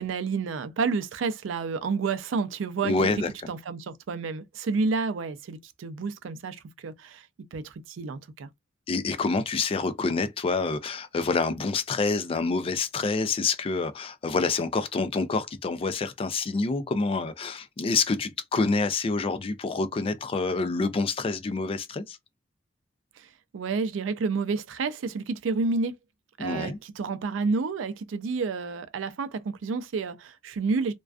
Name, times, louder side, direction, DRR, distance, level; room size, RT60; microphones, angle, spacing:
voice 1, 0.0-3.1 3.5-7.3 7.5-8.5 23.2-23.3 23.5-26.0 26.4-30.9, right 4 dB, 85° right, 0.4 m, -30 dB
voice 2, 2.8-3.3 8.9-22.2 26.4-26.8, left 4 dB, 30° left, 0.3 m, -27 dB
2.4 x 2.2 x 2.3 m
head